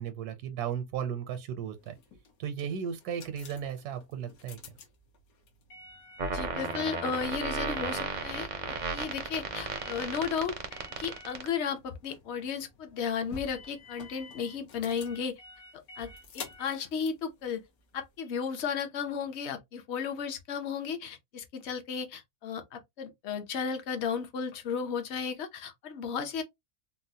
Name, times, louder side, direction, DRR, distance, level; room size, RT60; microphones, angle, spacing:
voice 1, 0.0-2.0 2.4-4.8, right 8 dB, 85° right, 1.1 m, -35 dB
sound 1, 1.8-18.2, left 3 dB, 75° left, 1.2 m, -50 dB
sound 2, 6.2-11.5, right 4 dB, 55° right, 0.5 m, -34 dB
voice 2, 6.3-8.5 8.9-10.5 11.0-15.3 16.0-17.6 17.9-26.4, left 6 dB, 55° left, 0.8 m, -34 dB
3.8 x 2.0 x 2.7 m
omnidirectional pair, 1.6 m